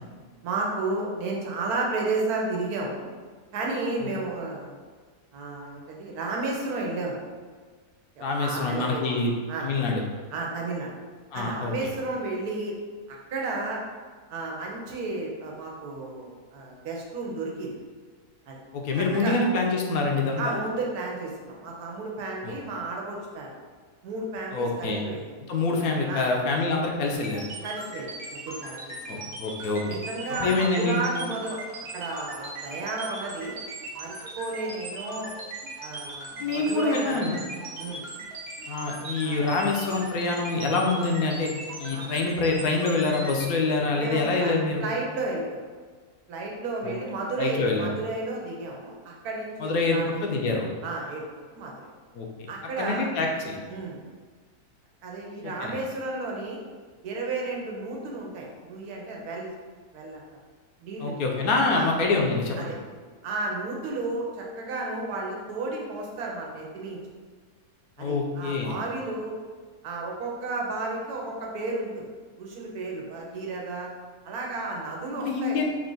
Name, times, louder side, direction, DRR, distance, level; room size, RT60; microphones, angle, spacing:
voice 1, 0.4-3.1 3.5-4.7 5.3-7.2 8.2-9.2 9.5-9.7 10.3-10.9 11.3-12.7 13.1-13.8 14.3-17.7 18.5-18.6 19.0-19.4 20.4-23.5 24.0-25.3 26.1-26.3 27.6-29.2 29.9-33.6 33.9-35.3 35.8-37.4 37.8-38.1 39.2-39.4 41.9-42.1 43.9-44.5 44.8-45.6 46.3-50.2 50.8-51.9 52.5-53.1 53.7-54.0 55.0-56.6 57.0-59.5 59.9-60.2 60.8-61.2 61.7-61.9 62.6-62.8 63.2-67.0 68.0-69.3 69.8-72.0 72.4-73.9 74.2-75.6, right 3 dB, 85° right, -1 dB, 1.2 m, -32 dB
voice 2, 8.2-9.3 9.6-10.0 11.3-11.7 18.7-20.6 22.4-22.5 24.5-25.1 25.5-27.5 29.1-29.8 30.4-31.0 36.4-37.4 38.7-41.5 41.8-44.8 46.8-46.9 47.4-47.9 49.6-50.7 52.2-52.3 52.8-53.6 55.4-55.7 61.0-62.7 68.0-68.8 75.1-75.7, left 3 dB, 75° left, 1 dB, 1.0 m, -26 dB
sound 1, 27.1-43.5, right 2 dB, 50° right, 0.9 m, -39 dB
3.7 x 2.5 x 3.8 m, 1.5 s
omnidirectional pair, 1.6 m